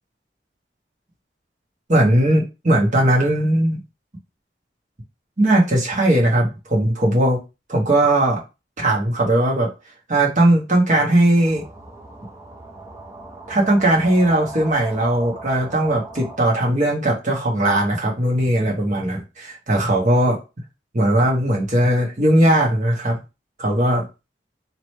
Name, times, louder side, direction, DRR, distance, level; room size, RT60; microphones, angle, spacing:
voice 1, 1.9-3.8 5.4-7.4 7.7-8.4 8.8-9.7 10.1-11.6 13.5-20.4 20.9-23.2 23.6-24.1, right 1 dB, 45° right, -2 dB, 1.2 m, -18 dB
sound 1, 11.4-16.4, right 2 dB, 15° right, 0.6 m, -38 dB
3.2 x 2.9 x 4.3 m, 0.27 s
head